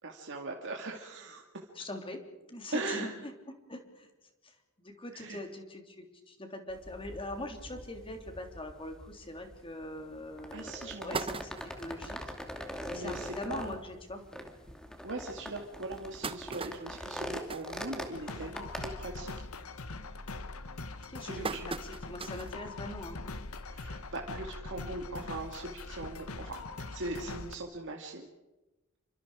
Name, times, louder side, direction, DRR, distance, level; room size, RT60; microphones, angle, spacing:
voice 1, 0.0-1.7 2.7-3.1 5.1-5.4 10.5-11.2 12.9-13.8 15.0-19.3 21.2-21.7 23.7-26.6 26.9-28.3, right 2 dB, 60° right, 1 dB, 2.3 m, -40 dB
voice 2, 1.7-3.1 3.7-4.1 4.4-11.5 11.8-12.3 12.9-14.2 21.1-23.2, left 1 dB, 25° left, 4 dB, 3.4 m, -42 dB
sound 1, 6.7-18.9, equal, 5° left, 2.6 m, -43 dB
sound 2, 10.0-10.1 10.6-10.7 10.9-12.0 12.5-12.6 12.9-13.0 13.3-13.5 14.2-14.3 14.8-14.9 15.7-18.5 18.9-19.2 19.6-20.0 20.6-22.6 23.0-23.1 24.3-24.4, right 4 dB, 25° right, 0.9 m, -40 dB
sound 3, 18.1-27.6, left 3 dB, 80° left, 1.5 m, -42 dB
28.5 x 25.0 x 5.0 m, 1.1 s
head